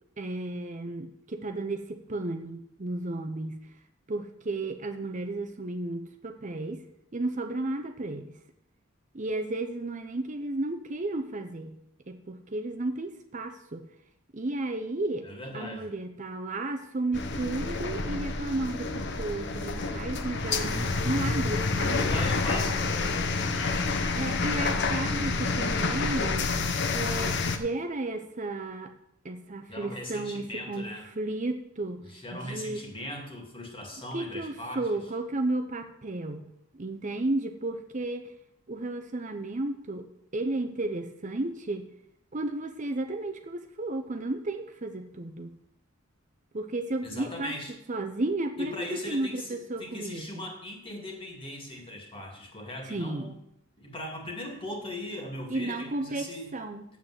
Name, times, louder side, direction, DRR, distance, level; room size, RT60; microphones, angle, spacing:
voice 1, 0.2-3.7 4.1-6.8 7.1-8.3 9.1-11.7 12.1-13.8 14.3-15.3 15.5-22.3 24.1-26.5 26.9-28.9 29.2-30.9 31.2-32.8 34.1-38.3 38.7-40.1 40.3-41.9 42.3-45.5 46.5-47.5 47.9-50.4 52.8-53.3 55.5-56.8, right 2 dB, 35° right, 6 dB, 0.7 m, -33 dB
voice 2, 15.2-15.9 21.9-23.9 29.7-31.0 32.1-34.8 47.0-47.7 48.6-53.4 53.8-56.5, left 1 dB, 25° left, 1 dB, 2.3 m, -39 dB
sound 1, 17.1-27.6, left 3 dB, 55° left, 0.9 m, -28 dB
8.1 x 7.3 x 7.8 m, 0.78 s
head